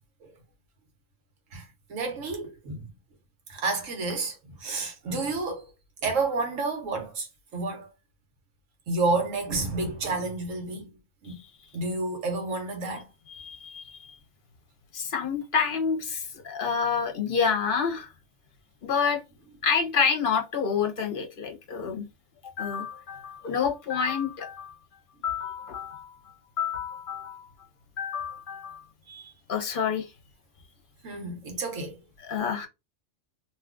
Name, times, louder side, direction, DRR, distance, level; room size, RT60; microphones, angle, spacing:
voice 1, 1.5-2.9 3.5-5.7 6.0-7.3 7.5-7.9 8.9-10.9 11.2-11.4 11.7-13.1 29.1-29.3 31.0-32.0, right 3 dB, 90° right, 1.3 m, -30 dB
voice 2, 13.3-14.2 14.9-18.1 18.8-19.2 19.6-22.0 22.6-24.8 25.2-26.2 26.6-27.5 28.0-28.8 29.5-30.1 32.2-32.7, left 6 dB, 50° left, 0.8 m, -28 dB
2.8 x 2.4 x 3.5 m
omnidirectional pair, 1.3 m